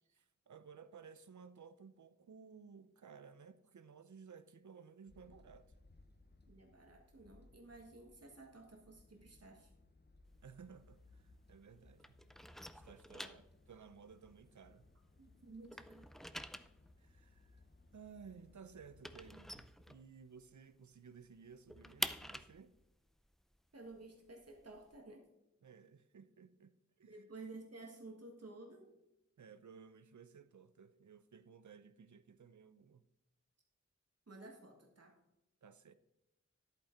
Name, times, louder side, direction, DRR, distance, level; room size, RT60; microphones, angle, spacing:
voice 1, 0.1-5.7 10.4-12.2 12.7-13.4 13.7-14.9 17.0-17.6 17.9-22.8 25.6-27.2 29.4-33.0 35.6-35.9, right 6 dB, 75° right, 0.6 m, -57 dB
sound 1, 5.1-19.7, left 2 dB, 35° left, 0.9 m, -65 dB
voice 2, 6.5-9.7 13.2-13.3 15.2-16.1 23.7-25.2 27.1-28.9 34.3-35.1, right 2 dB, 55° right, 1.6 m, -54 dB
sound 2, 10.3-11.7 12.0-15.2 15.5-20.5 20.8-20.9 21.2-25.0, equal, ahead, 0.5 m, -47 dB
10.5 x 8.4 x 3.8 m
wide cardioid pair, 50°, 29 cm